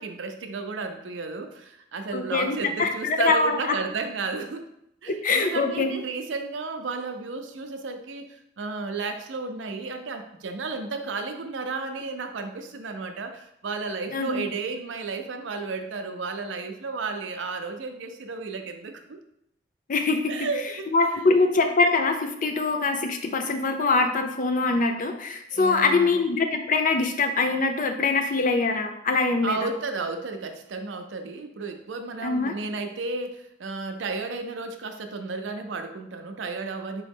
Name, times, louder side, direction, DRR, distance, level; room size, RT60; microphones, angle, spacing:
voice 1, 0.0-4.6 5.0-19.2 20.3-20.9 25.5-26.2 29.4-37.0, right 4 dB, 85° right, 6 dB, 0.5 m, -33 dB
voice 2, 2.1-3.6 5.2-5.9 14.1-14.4 19.9-20.3 20.9-29.7 32.2-32.5, left 3 dB, 45° left, 6 dB, 0.5 m, -23 dB
4.7 x 3.0 x 3.5 m, 0.76 s
head